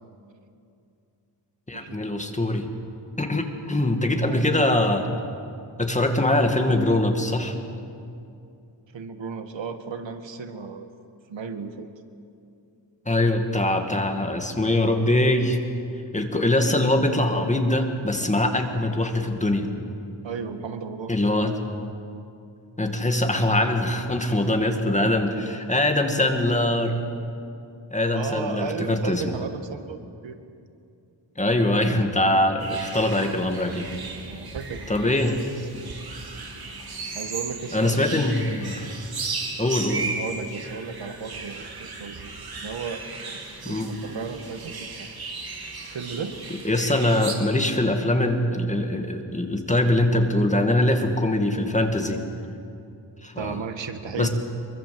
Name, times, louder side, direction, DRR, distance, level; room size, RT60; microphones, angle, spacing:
voice 1, 1.7-2.7 3.2-5.1 5.8-7.6 13.1-15.6 16.1-19.7 21.1-21.5 22.8-27.0 27.9-29.2 31.4-33.9 34.9-35.4 37.7-38.9 39.6-40.1 43.6-43.9 46.6-52.2 53.2-53.6 54.2-54.3, left 1 dB, 15° left, 4 dB, 2.2 m, -23 dB
voice 2, 8.9-10.9 11.3-11.9 20.2-21.1 28.1-30.4 34.2-35.5 37.1-38.0 39.6-39.9 40.2-42.3 42.6-45.1 45.5-46.4 53.4-54.3, right 5 dB, 80° right, 8 dB, 1.8 m, -35 dB
sound 1, 32.6-47.3, right 3 dB, 55° right, 3.1 m, -36 dB
24.5 x 23.0 x 7.9 m, 2.6 s
wide cardioid pair, 145°, 44 cm